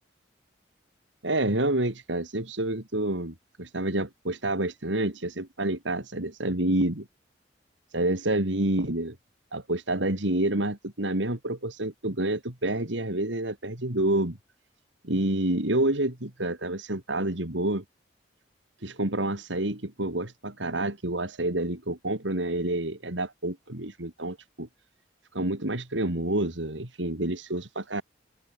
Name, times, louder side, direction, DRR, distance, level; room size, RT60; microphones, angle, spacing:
voice 1, 1.2-7.1 7.9-9.2 9.5-14.4 15.0-17.8 18.8-24.7 25.3-28.0, right 1 dB, 85° right, 3.5 m, -28 dB
open air
head